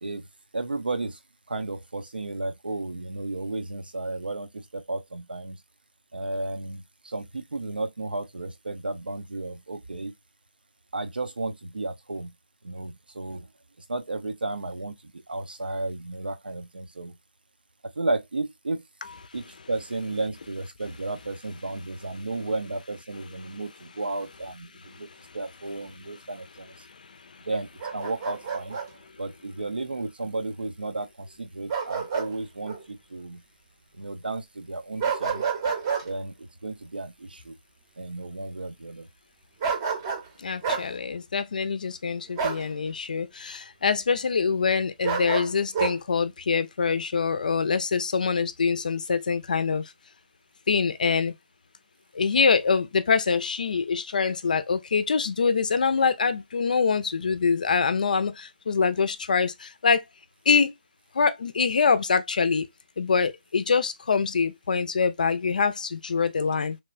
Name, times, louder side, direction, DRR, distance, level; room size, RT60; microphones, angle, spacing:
voice 1, 0.5-1.2 1.5-5.6 6.1-10.1 10.9-12.3 12.6-13.5 13.9-14.9 15.3-17.2 18.0-18.8 19.3-25.1 25.3-26.7 27.5-28.8 29.2-33.4 34.0-35.4 36.0-37.5 38.0-39.1, right 2 dB, 85° right, 0.6 m, -33 dB
Bark, 27.8-28.9 31.7-32.3 32.7-32.8 35.0-36.1 39.6-40.3 40.6-40.9 42.4-42.6 45.0-46.0, right 6 dB, 25° right, 0.7 m, -28 dB
voice 2, 40.4-49.8 50.7-51.3 52.1-60.0 60.5-60.7 61.1-62.7 63.0-66.8, left 5 dB, 55° left, 0.5 m, -24 dB
3.1 x 2.2 x 2.3 m
figure-of-eight pair, 155°, 5 cm